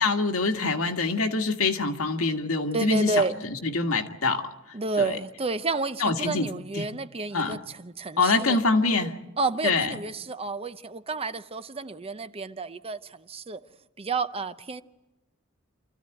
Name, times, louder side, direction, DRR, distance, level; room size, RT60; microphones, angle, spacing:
voice 1, 0.0-3.2 3.6-4.4 5.0-5.2 6.0-6.5 6.8-6.9 7.3-7.6 8.2-9.1 9.6-10.0, left 3 dB, 85° left, 1.7 m, -25 dB
voice 2, 2.7-3.4 4.7-8.6 9.4-13.6 14.0-14.8, right 3 dB, 30° right, 0.7 m, -30 dB
27.5 x 14.5 x 9.1 m
head